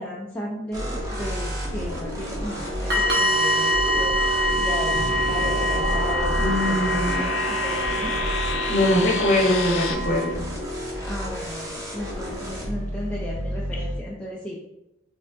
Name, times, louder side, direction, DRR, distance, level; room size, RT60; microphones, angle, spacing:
voice 1, 0.0-4.2 4.6-8.2 11.1-14.6, left 1 dB, 5° left, -5 dB, 0.4 m, -35 dB
sound 1, 0.7-14.0, equal, 15° right, 1.1 m, -31 dB
sound 2, 2.9-10.3, right 1 dB, 55° right, 1.0 m, -25 dB
sound 3, 4.9-9.9, left 4 dB, 85° left, 0.5 m, -31 dB
voice 2, 6.4-7.3 8.7-10.5, left 1 dB, 40° left, -1 dB, 1.0 m, -22 dB
5.1 x 3.3 x 2.5 m, 0.89 s
head